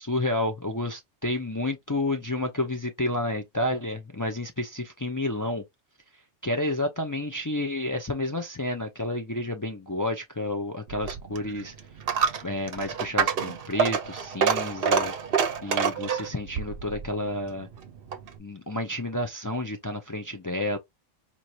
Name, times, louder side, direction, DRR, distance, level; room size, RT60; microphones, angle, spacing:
voice 1, 0.0-5.6 6.4-11.7 12.4-15.1 15.6-17.7 18.4-20.8, left 1 dB, 30° left, 0.4 m, -30 dB
Coin (dropping), 10.9-18.4, right 6 dB, 55° right, 0.8 m, -28 dB
4.5 x 2.7 x 2.6 m
omnidirectional pair, 1.2 m